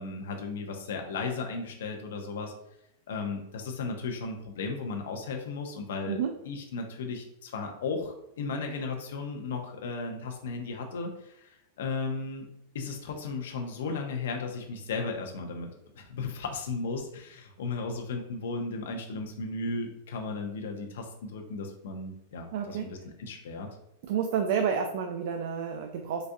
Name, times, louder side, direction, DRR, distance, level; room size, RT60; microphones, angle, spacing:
voice 1, 0.0-2.5 3.1-6.2 6.4-12.5 12.7-15.7 15.9-22.9 23.2-23.7, left 4 dB, 80° left, 2 dB, 0.5 m, -35 dB
voice 2, 22.5-22.9 24.0-26.3, right 7 dB, 55° right, 4 dB, 0.3 m, -30 dB
3.9 x 2.3 x 2.6 m, 0.76 s
supercardioid pair, 170°, 0 cm